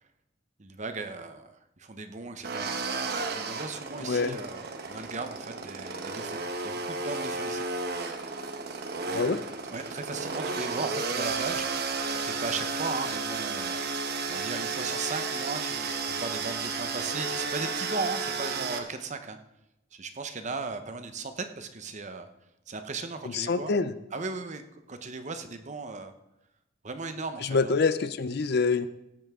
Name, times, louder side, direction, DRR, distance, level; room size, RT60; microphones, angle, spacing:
voice 1, 0.6-2.8 3.3-6.4 6.6-7.7 9.1-9.4 9.7-11.9 12.2-13.8 14.3-19.4 19.9-22.3 22.7-23.7 24.1-26.1 26.8-27.7, right 4 dB, 40° right, 8 dB, 0.9 m, -37 dB
sound 1, 2.4-18.8, right 4 dB, 60° right, 1.2 m, -33 dB
voice 2, 4.0-4.4 9.1-9.4 23.2-23.9 27.4-28.9, left 4 dB, 60° left, 13 dB, 0.6 m, -26 dB
16.5 x 8.9 x 3.7 m, 0.88 s
head